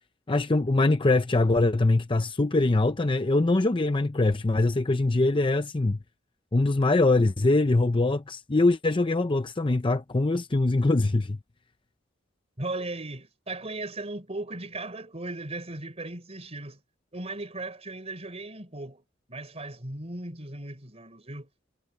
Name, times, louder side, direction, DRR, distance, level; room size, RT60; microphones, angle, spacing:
voice 1, 0.3-6.0 6.5-11.4, left 2 dB, 25° left, 0.6 m, -23 dB
voice 2, 12.6-16.8 17.1-21.5, right 2 dB, 35° right, 4.0 m, -37 dB
head